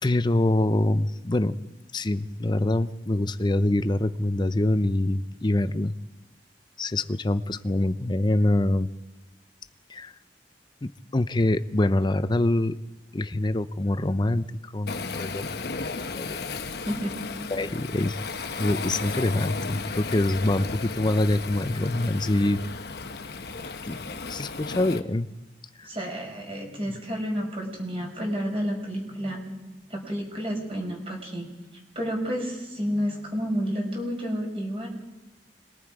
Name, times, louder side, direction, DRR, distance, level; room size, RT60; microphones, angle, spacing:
voice 1, 0.0-1.6 1.9-5.9 6.8-8.9 9.9-10.1 10.8-12.7 13.1-14.4 14.7-16.6 17.5-18.2 18.6-22.6 23.9-25.3 25.8-25.9 26.9-27.0, left 1 dB, 25° left, 12 dB, 0.6 m, -25 dB
Waves surf, 14.9-25.0, left 4 dB, 65° left, 1.0 m, -34 dB
voice 2, 16.8-17.2 24.9-25.0 25.8-29.4 29.9-31.5 31.9-34.9, equal, 35° right, 0 dB, 5.0 m, -30 dB
26.0 x 21.0 x 4.9 m, 1.1 s
head